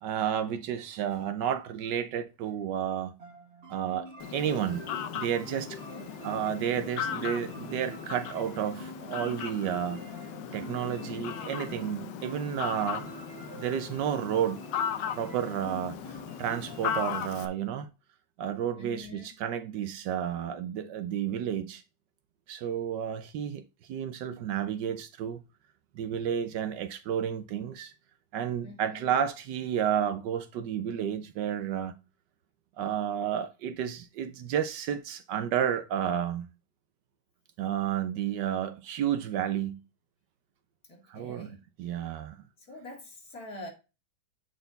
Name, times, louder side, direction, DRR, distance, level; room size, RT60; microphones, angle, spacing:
voice 1, 0.0-3.1 3.7-4.8 5.1-5.8 6.2-10.0 10.5-13.1 13.6-14.6 15.1-17.9 18.4-21.8 22.5-23.6 23.9-25.4 25.9-27.9 28.3-31.9 32.8-36.5 37.6-39.8 41.1-41.5 41.8-42.4, right 9 dB, 70° right, 1.2 m, -31 dB
sound 1, 3.2-16.9, right 3 dB, 40° right, 1.5 m, -47 dB
Fowl, 4.2-17.5, left 9 dB, 75° left, 1.4 m, -37 dB
voice 2, 18.8-19.3 28.6-29.2 40.9-41.6 42.6-43.7, left 2 dB, 50° left, 2.6 m, -45 dB
8.1 x 4.2 x 3.8 m
omnidirectional pair, 2.0 m